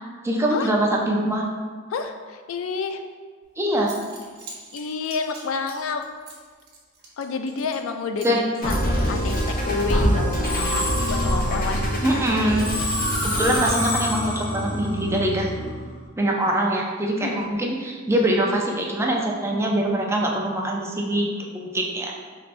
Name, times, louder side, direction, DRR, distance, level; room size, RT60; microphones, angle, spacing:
voice 1, 0.2-1.4 3.6-3.9 8.2-8.4 12.0-12.7 13.2-15.5 16.2-22.1, right 1 dB, 15° right, -1 dB, 0.4 m, -23 dB
voice 2, 1.9-3.0 4.7-6.0 7.2-8.8 9.1-12.2 17.2-17.5, left 4 dB, 85° left, 7 dB, 0.3 m, -29 dB
Zipper (clothing) / Coin (dropping), 3.4-3.5 3.8-7.9 8.2-8.4 8.7-10.5, right 3 dB, 55° right, 0.8 m, -44 dB
Musical instrument, 8.6-15.9, equal, 45° left, 0.9 m, -24 dB
4.9 x 3.1 x 2.5 m, 1.5 s
head